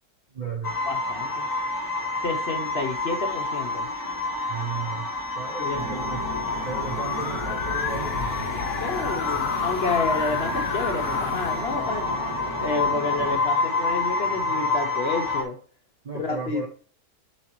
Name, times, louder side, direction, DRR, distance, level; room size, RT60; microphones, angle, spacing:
voice 1, 0.3-0.7 4.5-5.1 5.4-6.2 6.6-8.3 16.0-16.7, right 5 dB, 45° right, 1 dB, 0.6 m, -34 dB
sound 1, 0.6-15.4, left 2 dB, 15° left, 0.9 m, -28 dB
voice 2, 0.8-1.5 2.2-3.9 5.6-5.8 8.8-12.1 12.6-15.6 16.1-16.7, left 3 dB, 50° left, 4 dB, 0.8 m, -29 dB
sound 2, 5.7-12.9, left 8 dB, 85° left, 0.5 m, -32 dB
sound 3, 5.7-13.4, right 1 dB, 70° right, 3.2 m, -36 dB
7.3 x 6.5 x 3.0 m, 0.42 s
omnidirectional pair, 1.7 m